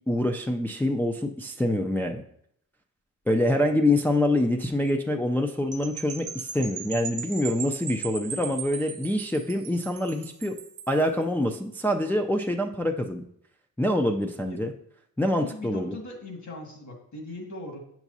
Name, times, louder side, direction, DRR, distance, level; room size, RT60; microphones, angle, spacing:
voice 1, 0.1-2.2 3.3-10.6 10.9-13.3 13.8-14.7 15.2-16.0, left 1 dB, 5° left, 2 dB, 0.4 m, -25 dB
sound 1, 5.7-11.0, right 6 dB, 55° right, 0.9 m, -38 dB
voice 2, 15.4-17.8, left 1 dB, 50° left, 1 dB, 2.0 m, -39 dB
8.0 x 6.0 x 2.7 m, 0.69 s
cardioid pair, 90°, 35 cm